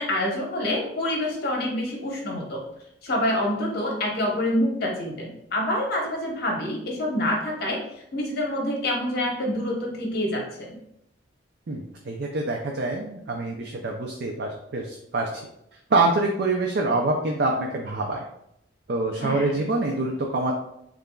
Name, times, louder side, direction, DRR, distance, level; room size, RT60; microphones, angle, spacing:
voice 1, 0.0-2.6 3.0-7.8 8.1-10.8 19.2-19.7, left 1 dB, 50° left, -1 dB, 1.0 m, -27 dB
voice 2, 11.7-15.3 15.9-18.2 18.9-20.5, right 2 dB, 55° right, 1 dB, 0.4 m, -25 dB
6.6 x 2.5 x 2.2 m, 0.78 s
head